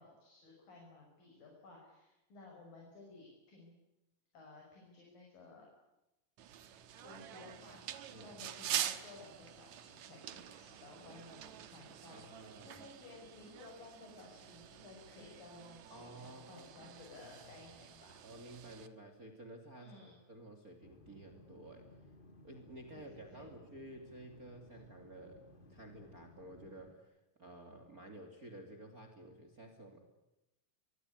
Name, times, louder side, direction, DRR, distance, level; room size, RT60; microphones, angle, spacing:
voice 1, 0.0-3.7 4.3-5.7 6.5-6.6 7.0-18.2 19.7-20.2 22.9-23.5, left 3 dB, 80° left, -1 dB, 7.8 m, -56 dB
sound 1, 6.4-18.9, right 10 dB, 65° right, 2.5 m, -46 dB
voice 2, 12.1-12.8 15.9-16.9 17.2-17.6 18.2-22.0 22.4-25.4 25.7-27.1 27.4-30.0, right 1 dB, 25° right, 5 dB, 3.1 m, -53 dB
sound 2, 20.8-26.9, left 1 dB, 20° left, 1.8 m, -60 dB
24.5 x 23.5 x 9.8 m, 0.96 s
omnidirectional pair, 3.9 m